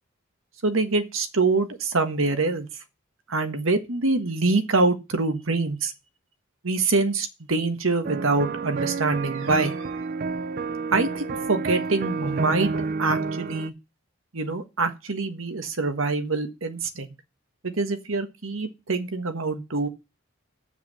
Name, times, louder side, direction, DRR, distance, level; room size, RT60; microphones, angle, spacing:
voice 1, 0.6-2.7 3.3-5.9 6.6-10.0 10.9-13.7 14.3-17.1 17.6-19.9, right 3 dB, 75° right, 1.5 m, -25 dB
sound 1, 8.0-13.7, right 4 dB, 45° right, 0.5 m, -29 dB
7.6 x 5.9 x 7.8 m
head